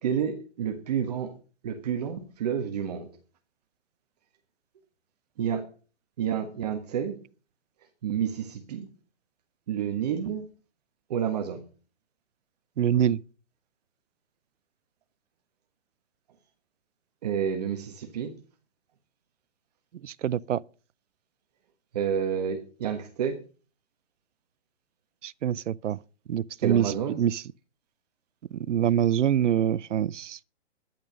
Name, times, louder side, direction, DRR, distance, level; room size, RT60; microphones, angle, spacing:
voice 1, 0.0-1.3 1.6-3.1 5.4-5.7 6.2-7.2 8.0-8.9 9.7-10.5 11.1-11.6 17.2-18.4 21.9-23.4 26.6-27.2, right 8 dB, 35° right, 1.4 m, -29 dB
voice 2, 12.8-13.2 20.0-20.6 25.2-26.0 26.3-27.4 28.5-30.4, right 10 dB, 90° right, 0.6 m, -25 dB
12.5 x 10.5 x 5.2 m
hypercardioid pair, 170°, 35 cm